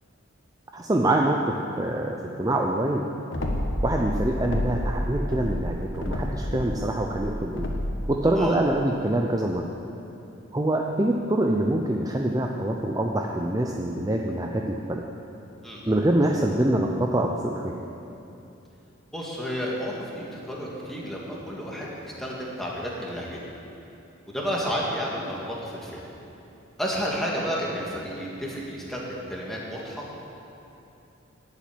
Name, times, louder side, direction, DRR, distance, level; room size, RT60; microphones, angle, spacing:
voice 1, 0.7-3.1 3.8-7.7 8.1-9.7 10.5-15.0 15.9-17.8, right 1 dB, 20° right, 1 dB, 0.5 m, -25 dB
sound 1, 3.3-4.9 5.2-8.0, left 1 dB, 65° left, 1.3 m, -29 dB
voice 2, 19.1-23.4 24.3-26.0 26.8-30.1, equal, ahead, -5 dB, 2.0 m, -31 dB
11.5 x 7.4 x 9.2 m, 2.9 s
head